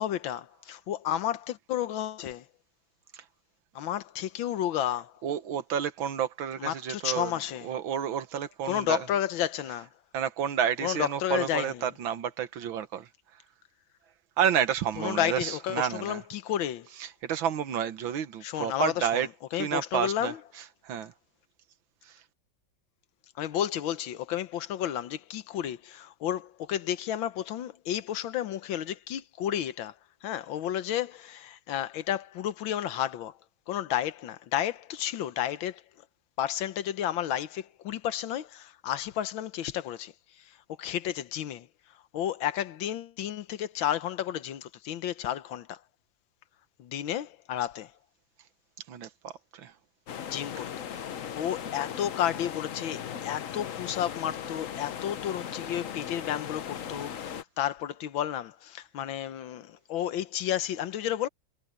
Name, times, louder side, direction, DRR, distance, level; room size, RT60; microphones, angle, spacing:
voice 1, 0.0-2.5 3.7-5.1 6.6-7.7 8.6-9.9 10.8-11.8 15.0-16.9 18.4-19.2 19.5-20.4 23.4-29.9 30.2-33.4 33.7-35.8 36.4-41.7 42.1-45.8 46.8-47.9 50.1-50.9 51.2-61.3, left 11 dB, 85° left, 1.7 m, -32 dB
voice 2, 5.2-7.3 7.6-9.0 10.1-13.4 14.4-16.2 17.0-19.3 19.5-21.1 22.0-22.2 48.9-49.7, right 8 dB, 85° right, 1.9 m, -30 dB
sound 1, 50.1-57.4, left 8 dB, 50° left, 1.1 m, -38 dB
omnidirectional pair, 2.1 m